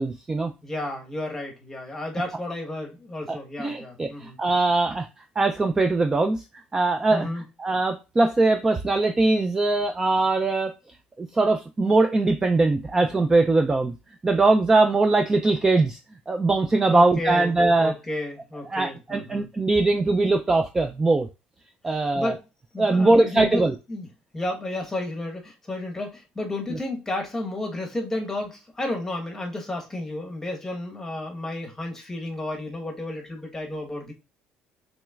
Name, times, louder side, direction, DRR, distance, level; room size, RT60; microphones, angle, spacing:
voice 1, 0.0-0.5 3.3-5.1 5.4-7.3 7.6-10.7 11.2-13.9 14.2-16.0 16.3-17.9 18.7-21.3 21.8-22.3 22.8-23.8 26.7-26.8, right 2 dB, 15° right, 0.3 m, -21 dB
voice 2, 0.6-4.4 7.1-7.4 16.9-19.5 21.9-22.4 22.7-23.6 23.9-24.1 24.3-34.1, left 1 dB, 10° left, 1.1 m, -32 dB
6.2 x 3.1 x 2.3 m
cardioid pair, 150°, 3 cm